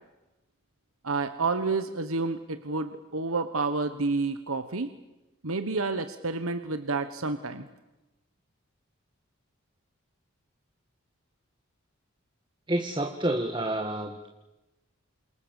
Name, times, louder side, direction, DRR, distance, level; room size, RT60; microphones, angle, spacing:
voice 1, 1.0-4.9 5.4-7.7, right 3 dB, 75° right, 10 dB, 1.3 m, -29 dB
voice 2, 12.7-14.3, right 1 dB, 20° right, 4 dB, 1.7 m, -29 dB
29.0 x 27.0 x 7.2 m, 1.0 s
head